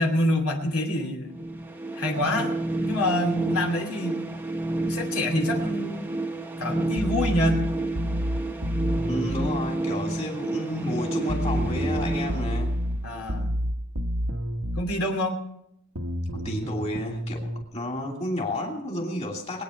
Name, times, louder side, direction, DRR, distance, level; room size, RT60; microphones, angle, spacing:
voice 1, 0.0-1.3 1.9-2.5 2.8-4.2 4.8-6.1 6.6-7.6 13.0-13.5 14.8-15.4, left 1 dB, 75° left, 1 dB, 2.7 m, -26 dB
sound 1, 1.3-13.2, right 2 dB, 10° right, 1.0 m, -30 dB
sound 2, 7.0-9.5 11.3-14.9 16.0-17.6, equal, 85° right, 1.3 m, -29 dB
voice 2, 9.1-12.7 16.3-19.6, left 1 dB, 30° left, 0 dB, 2.8 m, -31 dB
21.5 x 9.3 x 5.3 m, 0.78 s
head